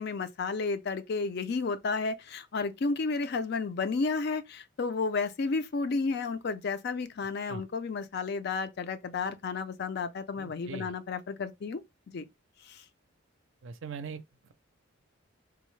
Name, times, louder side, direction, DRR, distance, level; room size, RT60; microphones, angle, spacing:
voice 1, 0.0-11.8 12.1-12.2 12.6-12.8, left 4 dB, 55° left, 0.4 m, -32 dB
voice 2, 10.3-10.9 13.6-14.2, right 5 dB, 65° right, 0.4 m, -40 dB
3.6 x 2.0 x 3.1 m
head